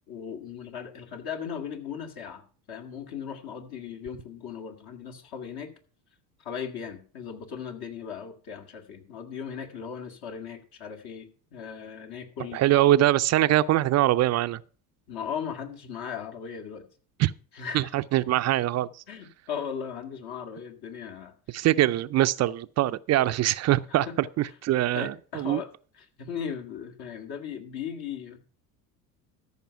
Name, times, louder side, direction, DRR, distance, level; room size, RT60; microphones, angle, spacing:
voice 1, 0.1-5.7 6.4-12.6 15.1-16.9 17.5-17.9 19.1-21.6 23.9-24.1 24.4-24.5 24.9-25.7 25.9-28.4, left 7 dB, 55° left, 2.1 m, -37 dB
voice 2, 12.5-14.6 17.2-17.3 17.7-18.9 21.5-24.1 24.4-25.6, right 14 dB, 40° right, 0.4 m, -23 dB
13.5 x 5.4 x 5.7 m
hypercardioid pair, 80°, 45 cm